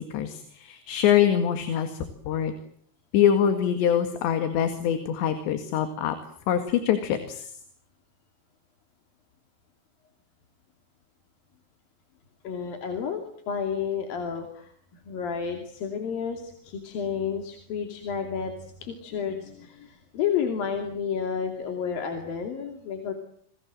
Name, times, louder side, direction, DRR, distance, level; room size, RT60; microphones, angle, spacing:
voice 1, 0.0-2.5 3.1-6.2 6.5-7.5, left 9 dB, 80° left, 8 dB, 4.2 m, -24 dB
voice 2, 12.4-14.7 15.0-23.1, left 7 dB, 55° left, 4 dB, 4.2 m, -31 dB
28.5 x 22.0 x 7.7 m, 0.65 s
omnidirectional pair, 5.1 m